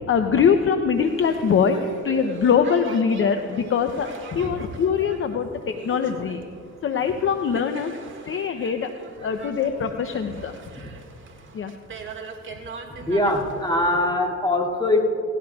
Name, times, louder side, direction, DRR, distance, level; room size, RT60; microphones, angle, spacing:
voice 1, 0.1-5.5 5.8-6.4 6.8-7.9 8.3-8.9 9.2-10.5 11.5-11.7, left 6 dB, 45° left, 7 dB, 0.7 m, -22 dB
Boat Water vehicle, 0.9-14.1, right 5 dB, 40° right, 1.8 m, -40 dB
voice 2, 13.0-15.0, left 1 dB, 15° left, -2 dB, 2.3 m, -22 dB
18.0 x 16.5 x 2.3 m, 2.6 s
cardioid pair, 90°, 30 cm